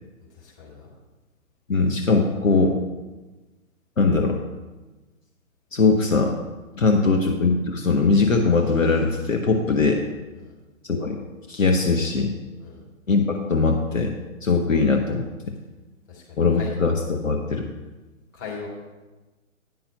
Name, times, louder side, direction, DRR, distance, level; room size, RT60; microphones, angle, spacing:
voice 1, 0.3-0.9 6.8-6.9 10.4-10.5 12.6-12.8 16.1-16.7 18.3-18.7, left 6 dB, 25° left, -5 dB, 2.4 m, -39 dB
voice 2, 1.7-2.8 4.0-4.4 5.7-6.4 6.8-10.0 10.8-11.2 11.5-12.3 13.1-14.1 14.4-15.5 16.4-17.7, left 4 dB, 70° left, 3 dB, 1.0 m, -21 dB
9.4 x 5.6 x 5.5 m, 1.2 s
figure-of-eight pair, 135°, 41 cm